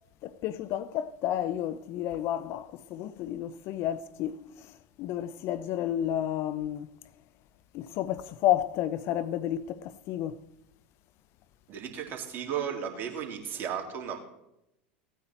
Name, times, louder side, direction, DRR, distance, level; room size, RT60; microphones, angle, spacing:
voice 1, 0.2-6.9 7.7-10.4, left 12 dB, 55° left, 0.7 m, -31 dB
voice 2, 11.7-14.2, right 8 dB, 40° right, 3.0 m, -34 dB
17.0 x 9.3 x 4.4 m
hypercardioid pair, 90°, 6 cm